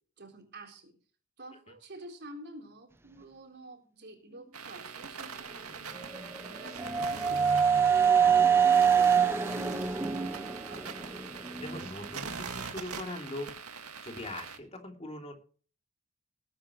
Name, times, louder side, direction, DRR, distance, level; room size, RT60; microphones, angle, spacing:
voice 1, 0.2-1.0 1.4-10.9, right 2 dB, 50° right, 3 dB, 3.9 m, -49 dB
sound 1, 4.5-14.6, right 6 dB, 85° right, 2.0 m, -42 dB
sound 2, 6.0-11.9, right 7 dB, 10° right, 0.7 m, -25 dB
voice 2, 11.6-13.5 14.0-15.3, left 1 dB, 30° left, 4 dB, 3.0 m, -41 dB
20.0 x 9.7 x 3.1 m, 0.41 s
head